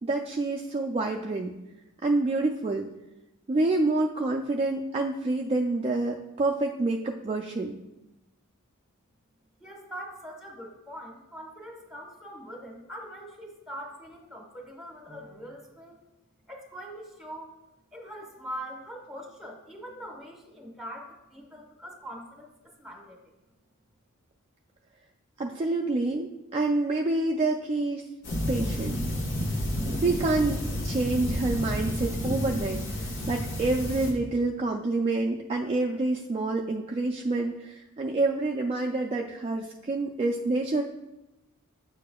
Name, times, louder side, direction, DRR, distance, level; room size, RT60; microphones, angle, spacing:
voice 1, 0.0-1.5 2.0-2.9 3.5-7.8 25.4-28.0 28.5-29.0 30.0-40.8, right 2 dB, 25° right, 1 dB, 0.3 m, -27 dB
voice 2, 9.6-16.0 16.5-17.6 17.9-23.2, equal, ahead, 0 dB, 1.1 m, -42 dB
sound 1, 28.2-34.1, equal, 60° left, 1.4 m, -30 dB
8.6 x 6.7 x 2.3 m, 0.97 s
head